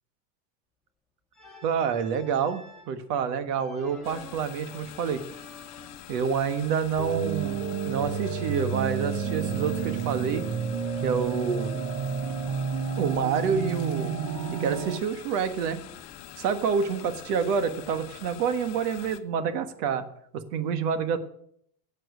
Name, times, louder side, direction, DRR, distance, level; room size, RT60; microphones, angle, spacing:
Organ, 1.3-3.0 3.5-6.2 7.4-9.2 9.5-11.8 13.4-15.2 15.5-18.2, left 2 dB, ahead, 1.9 m, -52 dB
voice 1, 1.6-5.2 6.1-10.5 11.0-11.7 13.0-14.1 14.5-15.8 16.4-20.1 20.3-21.2, right 6 dB, 75° right, 10 dB, 1.6 m, -28 dB
sound 1, 4.0-19.2, left 14 dB, 40° left, 0.9 m, -45 dB
sound 2, 7.0-15.0, right 6 dB, 45° right, 1.2 m, -30 dB
11.0 x 7.7 x 8.1 m, 0.69 s
supercardioid pair, 150°, 48 cm